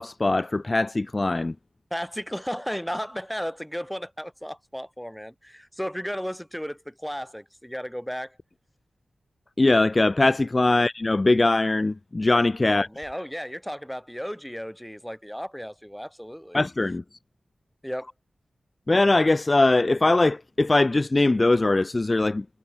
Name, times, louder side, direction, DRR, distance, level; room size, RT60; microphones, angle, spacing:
voice 1, 0.0-1.5 9.6-12.9 16.5-17.0 18.9-22.5, left 2 dB, 35° left, 0.4 m, -21 dB
voice 2, 1.9-8.4 12.7-16.6 17.8-18.1, equal, 5° left, 4.7 m, -34 dB
cardioid pair, 50°, 0 cm